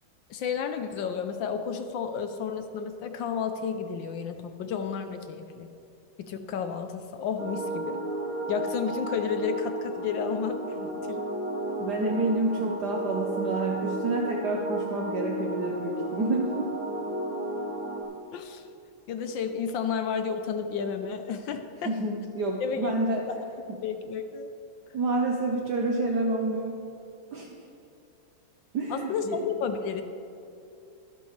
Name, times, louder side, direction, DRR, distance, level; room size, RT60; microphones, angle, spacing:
voice 1, 0.3-5.7 6.2-8.0 8.5-11.2 18.3-18.7 19.1-21.9 22.6-22.9 23.3-23.4 23.8-24.5 28.9-30.0, left 6 dB, 70° left, 7 dB, 1.3 m, -32 dB
sound 1, 7.4-18.0, right 1 dB, 35° right, 2.4 m, -33 dB
voice 2, 11.8-16.7 21.8-23.3 23.7-23.8 24.9-26.8 27.3-27.6 28.7-29.4, right 2 dB, 60° right, 0 dB, 1.4 m, -28 dB
23.5 x 8.1 x 3.3 m, 2.7 s
omnidirectional pair, 2.3 m